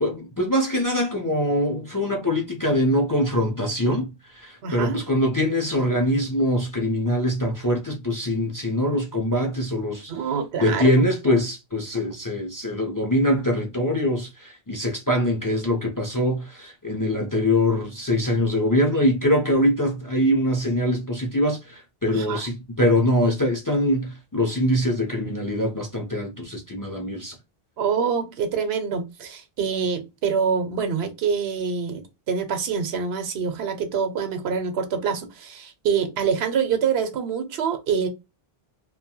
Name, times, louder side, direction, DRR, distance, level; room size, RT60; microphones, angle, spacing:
voice 1, 0.0-10.1 10.6-27.4, left 1 dB, 30° left, 0.4 m, -23 dB
voice 2, 4.6-5.0 10.1-11.1 22.1-22.4 27.8-38.1, right 6 dB, 90° right, 0.9 m, -26 dB
2.7 x 2.1 x 2.7 m
omnidirectional pair, 1.0 m